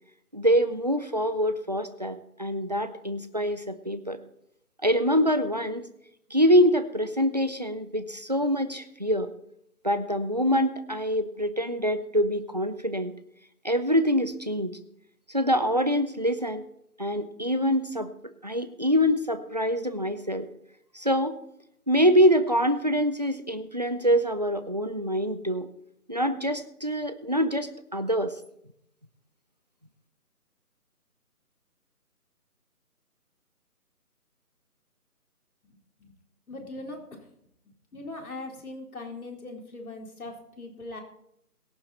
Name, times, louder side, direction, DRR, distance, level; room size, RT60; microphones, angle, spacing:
voice 1, 0.3-4.2 4.8-5.9 6.3-9.3 9.8-13.1 13.6-14.8 15.3-16.7 17.0-18.1 18.4-20.5 20.9-21.3 21.9-25.7 26.1-28.3, equal, 30° right, 10 dB, 0.6 m, -25 dB
voice 2, 36.5-37.0 37.9-41.0, left 2 dB, 65° left, 1 dB, 4.0 m, -40 dB
22.5 x 7.6 x 4.2 m, 0.76 s
figure-of-eight pair, 165°, 46 cm